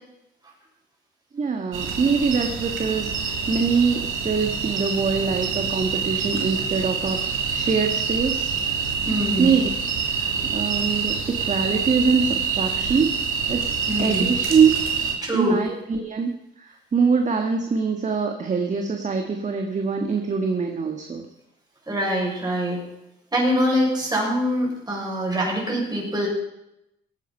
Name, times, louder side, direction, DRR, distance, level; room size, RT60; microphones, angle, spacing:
voice 1, 1.3-8.5 9.4-9.7 10.2-11.1 11.5-13.1 13.5-13.6 14.0-14.7 15.3-16.3 16.6-21.3, right 5 dB, 35° right, 4 dB, 1.6 m, -23 dB
sound 1, 1.7-15.1, right 6 dB, 85° right, 3.0 m, -26 dB
voice 2, 9.0-9.5 13.9-14.3 15.2-15.6 21.9-22.8 23.3-26.3, equal, 20° right, -3 dB, 7.0 m, -24 dB
18.5 x 8.8 x 5.5 m, 0.87 s
cardioid pair, 90°, 20 cm